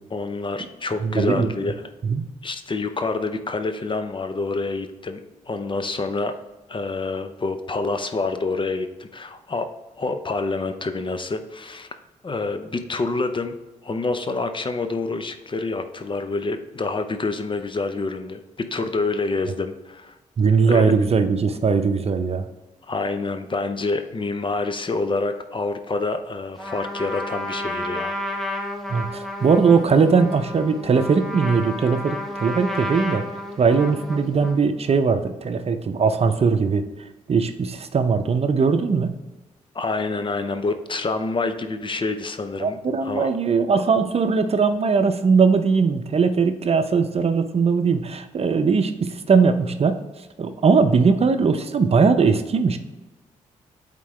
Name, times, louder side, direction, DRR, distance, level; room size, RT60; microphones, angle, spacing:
voice 1, 0.1-1.9 2.4-5.2 5.5-6.3 6.7-9.7 10.0-11.9 12.2-13.5 13.8-20.1 20.7-20.9 22.9-28.2 39.7-43.3, left 3 dB, 35° left, 8 dB, 0.7 m, -27 dB
voice 2, 1.0-1.6 2.0-2.3 20.4-22.5 28.9-33.2 33.6-36.8 37.3-39.2 42.6-50.0 50.4-52.8, right 5 dB, 45° right, 8 dB, 0.6 m, -20 dB
Trumpet, 26.6-34.7, left 1 dB, ahead, 1.2 m, -31 dB
8.4 x 3.8 x 3.2 m, 1.1 s
supercardioid pair, 50°, 14 cm